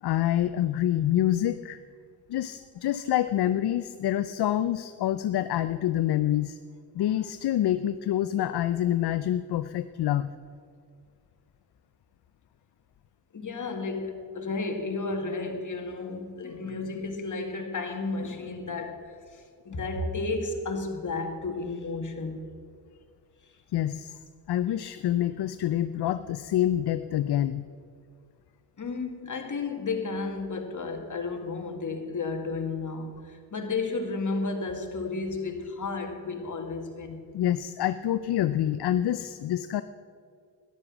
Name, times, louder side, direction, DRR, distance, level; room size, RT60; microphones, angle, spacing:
voice 1, 0.0-1.8 2.3-6.6 6.9-10.3 23.7-24.2 24.5-27.7 37.3-39.8, left 12 dB, 65° left, 0.6 m, -27 dB
voice 2, 13.3-22.5 28.8-37.2, left 3 dB, 45° left, 2.1 m, -32 dB
13.0 x 11.5 x 6.1 m
cardioid pair, 60°, 42 cm